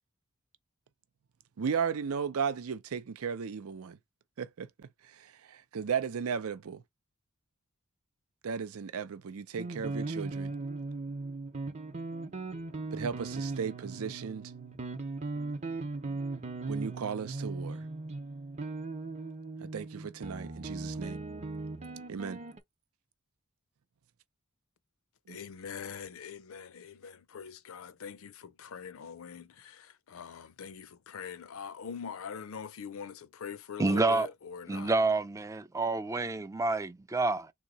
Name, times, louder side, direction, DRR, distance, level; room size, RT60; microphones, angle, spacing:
voice 1, 1.6-4.0 4.4-4.9 5.2-6.8 8.4-10.5 12.9-14.4 16.7-17.8 19.6-21.2 22.1-22.4 25.3-25.4, right 6 dB, 80° right, 0.5 m, -35 dB
sound 1, 9.6-22.6, right 3 dB, 30° right, 0.7 m, -38 dB
voice 2, 25.3-34.9, left 7 dB, 70° left, 0.5 m, -43 dB
voice 3, 33.8-34.3 34.7-37.5, right 3 dB, 15° right, 0.3 m, -28 dB
3.6 x 2.9 x 4.0 m
head